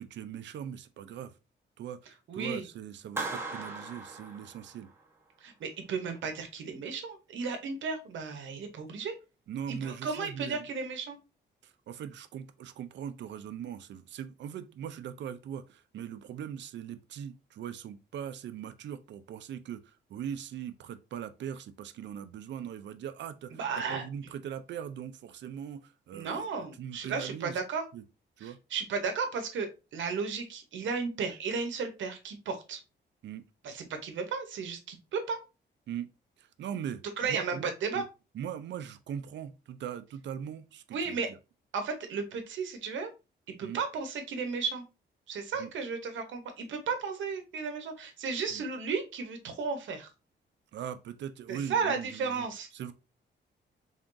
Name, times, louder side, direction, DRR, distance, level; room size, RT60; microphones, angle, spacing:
voice 1, 0.0-1.3 1.8-4.9 9.5-10.7 11.6-23.5 23.8-26.5 26.8-27.6 27.9-28.0 28.4-28.6 33.2-33.4 35.9-36.1 36.4-38.0 38.3-41.4 43.6-43.8 45.5-45.7 48.5-48.6 50.7-52.5 52.7-52.9, right 9 dB, 70° right, 0.5 m, -40 dB
voice 2, 2.3-2.6 5.4-9.2 9.7-11.2 23.5-24.0 26.1-27.9 28.4-32.8 33.6-35.4 37.2-38.0 40.9-41.3 41.7-43.1 43.6-44.9 45.3-50.1 51.5-52.7, right 5 dB, 85° right, 0.8 m, -34 dB
Clapping, 3.2-5.0, right 3 dB, 10° right, 0.9 m, -38 dB
3.8 x 3.5 x 2.5 m
wide cardioid pair, 135°, 19 cm